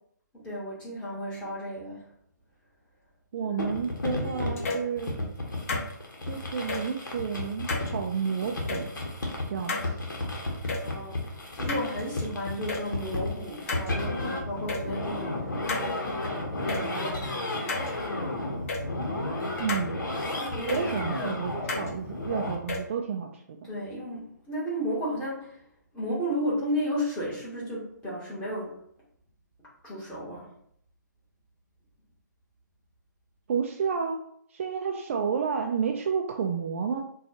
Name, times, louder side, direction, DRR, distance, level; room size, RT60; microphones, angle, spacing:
voice 1, 0.3-2.1 10.8-17.9 20.4-21.1 23.6-25.6 25.9-28.7 29.8-30.5, equal, 10° left, -8 dB, 1.3 m, -34 dB
voice 2, 3.3-5.2 6.2-8.9 9.5-10.0 19.6-20.0 20.7-23.7 33.5-34.2 34.5-37.0, right 6 dB, 40° right, 2 dB, 0.3 m, -31 dB
sound 1, 3.6-22.5, left 2 dB, 75° left, 1.0 m, -33 dB
sound 2, 4.6-4.9 5.7-5.8 6.7-6.8 7.7-7.9 8.7-8.8 9.7-9.8 10.7-10.8 11.7-12.2 12.7-12.8 13.7-13.9 14.7-14.8 15.7-15.8 16.7-16.8 17.7-17.9 18.7-18.8 19.7-19.8 20.7-20.8 21.7-21.9 22.7-22.8, left 3 dB, 45° left, 0.7 m, -31 dB
4.1 x 2.3 x 2.8 m, 0.67 s
figure-of-eight pair, 145°, 10 cm